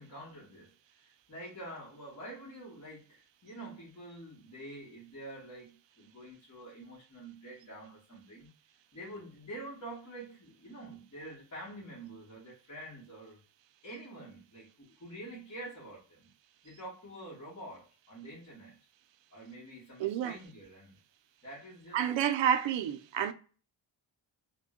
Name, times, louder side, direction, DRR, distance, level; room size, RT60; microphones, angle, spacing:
voice 1, 0.0-8.5 8.9-13.4 13.8-16.3 16.6-18.7 19.3-20.9 21.4-22.0, right 1 dB, 35° left, 1.3 m, -47 dB
voice 2, 20.0-20.4 21.9-23.3, right 9 dB, 80° right, 0.5 m, -29 dB
3.4 x 2.2 x 2.3 m
wide cardioid pair, 105°, 44 cm